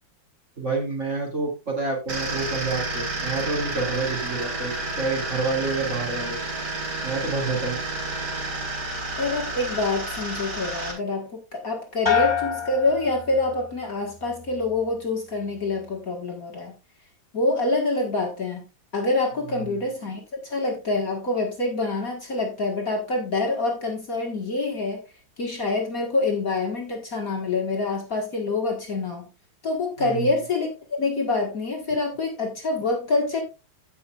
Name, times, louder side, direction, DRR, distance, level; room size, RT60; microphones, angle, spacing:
voice 1, 0.6-6.4 7.0-7.8 19.5-19.8 30.0-30.3, right 3 dB, 30° right, 2.8 m, -28 dB
sound 1, 2.1-10.9, right 2 dB, 50° right, 3.5 m, -30 dB
voice 2, 9.2-16.7 17.3-18.6 18.9-25.0 25.4-29.3 29.6-33.4, left 3 dB, 45° left, 1.9 m, -26 dB
sound 2, 12.1-13.8 14.2-14.8, left 8 dB, 10° left, 2.3 m, -27 dB
16.0 x 5.7 x 2.4 m
omnidirectional pair, 2.4 m